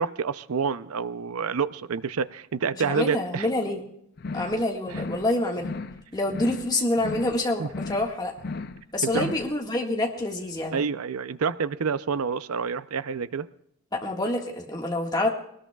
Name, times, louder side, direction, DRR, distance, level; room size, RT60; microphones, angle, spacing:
voice 1, 0.0-3.5 7.6-7.7 9.0-9.3 10.7-13.5, right 6 dB, 80° right, 15 dB, 0.5 m, -28 dB
voice 2, 2.7-3.8 4.3-5.7 6.1-8.3 8.9-10.7 13.9-15.3, left 1 dB, 20° left, 0 dB, 1.6 m, -27 dB
sound 1, 4.2-4.6 4.9-5.3 5.6-6.0 6.3-6.7 7.0-7.4 7.7-8.1 8.4-8.8 9.1-9.5, left 3 dB, 45° left, 0.5 m, -35 dB
21.5 x 19.0 x 2.3 m, 0.72 s
head